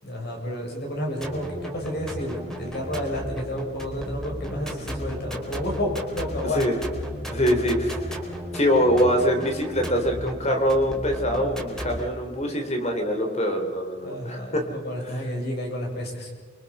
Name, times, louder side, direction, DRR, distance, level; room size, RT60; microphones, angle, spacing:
voice 1, 0.0-6.8 7.4-7.6 14.0-16.3, equal, 55° left, 1 dB, 7.1 m, -31 dB
sound 1, 1.2-12.0, equal, 5° left, 4.1 m, -34 dB
voice 2, 7.3-7.9 8.5-14.6 15.0-15.1, equal, 35° left, 4 dB, 3.8 m, -23 dB
28.5 x 24.0 x 5.6 m, 1.5 s
head